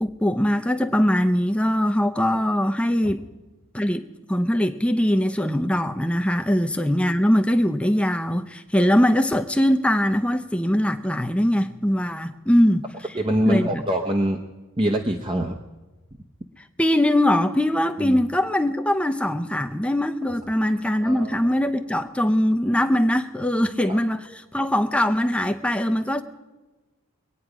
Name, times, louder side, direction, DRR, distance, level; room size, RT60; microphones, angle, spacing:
voice 1, 0.0-3.2 3.7-4.0 4.3-12.8 13.4-13.8 16.8-26.2, equal, 5° left, 0.6 m, -21 dB
voice 2, 13.1-14.4 14.8-15.6 18.0-18.2 21.0-21.3 23.9-24.0, right 1 dB, 25° right, 0.8 m, -24 dB
23.0 x 9.4 x 4.9 m
head